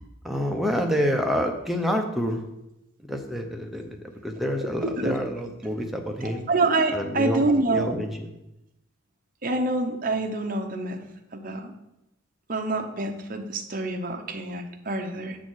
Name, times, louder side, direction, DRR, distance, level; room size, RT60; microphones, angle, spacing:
voice 1, 0.2-2.4 3.0-6.5 6.9-7.4 7.7-8.3, equal, ahead, 2 dB, 0.7 m, -28 dB
voice 2, 4.8-5.1 6.2-7.9 9.4-11.0 11.3-11.7 12.5-15.4, right 2 dB, 40° right, 4 dB, 0.8 m, -26 dB
7.3 x 4.1 x 6.3 m, 0.89 s
head